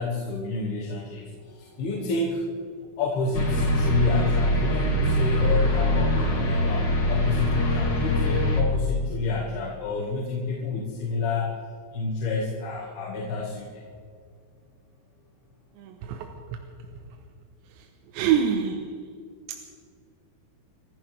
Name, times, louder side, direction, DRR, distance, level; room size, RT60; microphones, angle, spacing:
voice 1, 0.0-2.4 3.0-11.6 11.9-13.8, left 3 dB, 65° left, -3 dB, 3.8 m, -29 dB
sound 1, 3.3-8.6, left 1 dB, 35° left, 2.7 m, -23 dB
voice 2, 15.8-16.3 18.1-18.8, right 8 dB, 85° right, 3 dB, 3.3 m, -24 dB
27.0 x 15.5 x 3.4 m, 2.2 s
omnidirectional pair, 5.0 m